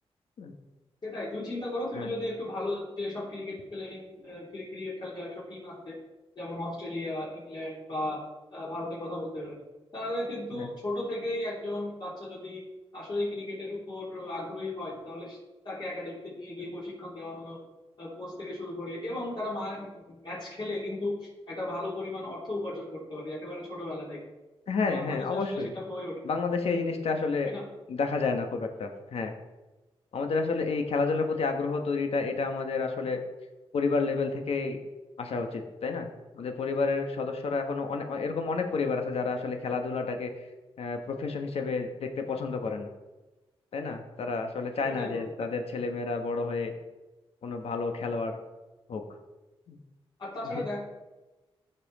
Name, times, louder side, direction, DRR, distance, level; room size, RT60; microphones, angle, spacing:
voice 1, 1.0-6.0 6.3-8.2 8.5-9.6 9.9-12.6 12.9-15.4 15.6-17.6 18.0-24.3 24.9-26.2 27.4-27.6 44.8-45.5 50.2-50.8, left 1 dB, 45° left, -8 dB, 3.4 m, -36 dB
voice 2, 24.7-25.7 26.2-27.5 27.9-29.3 30.1-33.2 33.7-34.8 35.2-36.1 36.3-40.3 40.8-42.9 43.7-46.7 47.4-48.4 48.9-49.0 49.7-49.8 50.5-50.6, left 4 dB, 75° left, 5 dB, 1.3 m, -30 dB
14.0 x 5.7 x 4.2 m, 1.1 s
wide cardioid pair, 100°, 10 cm